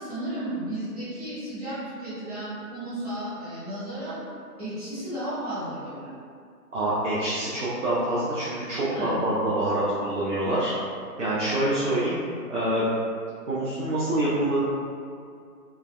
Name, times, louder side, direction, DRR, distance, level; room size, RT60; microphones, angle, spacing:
voice 1, 0.0-4.2 4.6-6.1 8.7-9.2, right 1 dB, 25° right, -15 dB, 1.1 m, -33 dB
voice 2, 6.7-10.7 11.2-12.2 12.5-12.9 13.5-14.6, right 1 dB, 50° right, -9 dB, 0.5 m, -26 dB
3.3 x 2.1 x 2.2 m, 2.3 s
hypercardioid pair, 170°, 48 cm